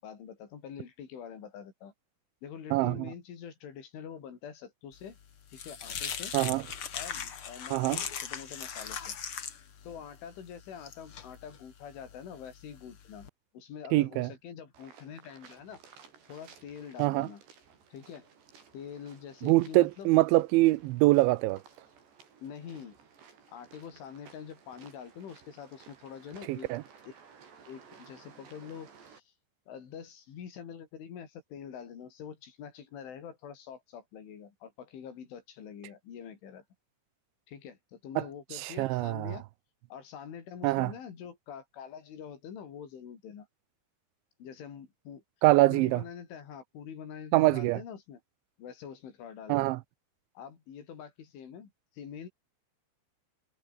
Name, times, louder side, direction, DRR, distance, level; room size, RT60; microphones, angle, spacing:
voice 1, 0.0-1.9 2.4-5.2 5.5-6.3 6.9-9.2 9.8-13.3 13.5-15.8 16.3-17.4 17.9-18.3 18.7-20.1 22.4-23.0 23.5-26.7 27.7-29.3 29.7-36.6 37.5-39.4 39.9-43.5 44.4-45.2 45.7-48.2 48.6-49.7 50.4-52.3, left 8 dB, 85° left, 6.5 m, -45 dB
voice 2, 2.7-3.1 6.3-6.6 7.7-8.0 13.9-14.3 17.0-17.3 19.4-21.6 26.5-26.8 38.2-38.3 38.5-39.4 40.6-40.9 45.4-46.0 47.3-47.8 49.5-49.8, right 19 dB, 80° right, 3.1 m, -24 dB
sound 1, 5.0-13.3, left 7 dB, 45° left, 1.8 m, -40 dB
sound 2, 14.7-29.2, right 6 dB, 65° right, 7.1 m, -57 dB
omnidirectional pair, 5.4 m